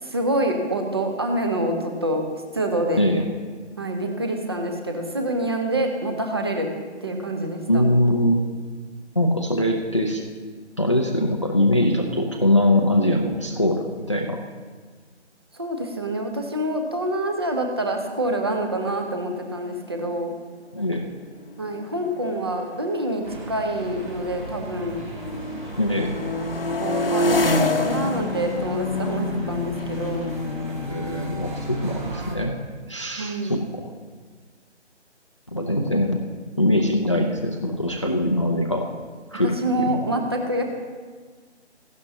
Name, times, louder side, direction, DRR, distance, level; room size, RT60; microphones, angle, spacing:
voice 1, 0.0-2.2 2.5-3.1 3.8-6.7 7.0-7.8 15.5-20.3 21.6-25.0 26.8-30.3 33.2-33.6 39.4-40.6, right 1 dB, 20° right, 4 dB, 0.7 m, -26 dB
voice 2, 7.7-8.5 9.1-10.2 10.8-14.4 20.7-21.1 25.8-26.1 30.7-32.6 32.9-33.8 35.5-36.2 36.6-38.9 39.3-40.1, left 1 dB, 25° left, 2 dB, 0.5 m, -22 dB
sound 1, 19.3-19.4 19.7-20.0 20.8-24.7 25.1-31.7, left 2 dB, 55° left, 0.9 m, -29 dB
sound 2, 23.2-32.4, right 2 dB, 40° right, 2.4 m, -37 dB
sound 3, 27.3-32.1, left 5 dB, 80° left, 0.6 m, -32 dB
15.5 x 11.5 x 2.8 m, 1.5 s
figure-of-eight pair, 155°, 35 cm